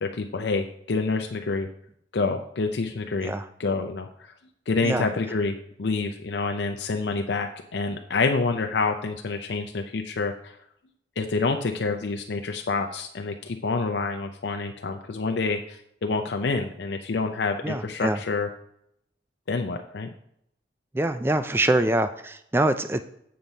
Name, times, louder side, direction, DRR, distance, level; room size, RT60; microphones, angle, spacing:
voice 1, 0.0-1.7 2.1-3.3 3.6-4.3 4.7-10.6 11.2-18.5 19.5-20.1, left 3 dB, 70° left, 5 dB, 0.5 m, -27 dB
voice 2, 17.6-18.2 20.9-23.0, right 1 dB, 10° right, 10 dB, 0.4 m, -24 dB
7.6 x 7.1 x 4.0 m, 0.74 s
head